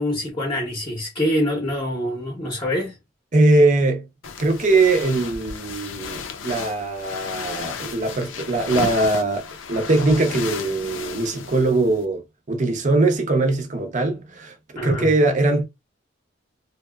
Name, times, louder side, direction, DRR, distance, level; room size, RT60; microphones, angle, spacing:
voice 1, 0.0-3.0 14.8-15.1, left 1 dB, 25° left, 0.7 m, -25 dB
voice 2, 3.3-4.1 4.4-12.2 12.5-15.6, right 2 dB, 40° right, 0.6 m, -21 dB
sound 1, 4.2-12.0, left 5 dB, 85° left, 0.5 m, -34 dB
2.8 x 2.1 x 2.2 m
head